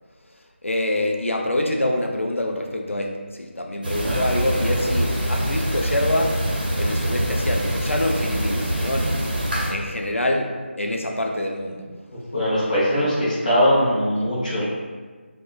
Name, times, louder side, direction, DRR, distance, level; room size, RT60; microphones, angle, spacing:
voice 1, 0.6-6.4 6.8-9.2 9.7-11.9, left 1 dB, 85° left, 2 dB, 0.4 m, -25 dB
sound 1, 3.8-9.7, right 1 dB, 45° right, 0.6 m, -24 dB
voice 2, 12.3-14.6, equal, 40° left, -8 dB, 0.8 m, -20 dB
2.9 x 2.1 x 2.3 m, 1.5 s
figure-of-eight pair, 160°, 7 cm